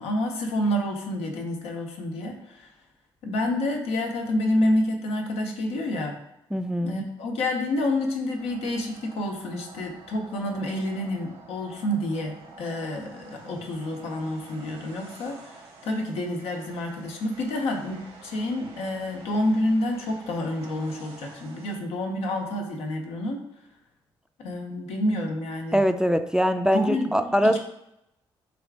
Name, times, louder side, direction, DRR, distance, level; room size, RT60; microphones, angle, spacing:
voice 1, 0.0-2.7 3.2-6.2 6.8-15.4 15.8-23.4 24.4-25.8 26.7-27.6, left 1 dB, 85° left, 2 dB, 0.6 m, -28 dB
voice 2, 6.5-7.0 25.7-27.6, equal, 5° right, 8 dB, 0.3 m, -22 dB
sound 1, 8.3-21.8, right 3 dB, 80° right, 0.9 m, -48 dB
4.0 x 2.4 x 3.4 m, 0.83 s
supercardioid pair, 55°, 10 cm